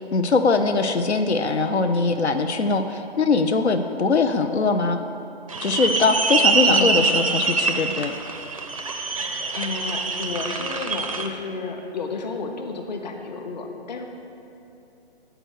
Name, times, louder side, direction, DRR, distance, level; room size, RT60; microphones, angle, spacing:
voice 1, 0.0-5.0 5.6-8.1, left 4 dB, 90° left, 7 dB, 0.5 m, -21 dB
sound 1, 5.5-11.3, right 4 dB, 35° right, 0.4 m, -24 dB
voice 2, 6.7-7.1 9.0-14.1, left 4 dB, 40° left, 3 dB, 0.8 m, -32 dB
7.8 x 4.6 x 6.3 m, 2.8 s
figure-of-eight pair, 140°, 33 cm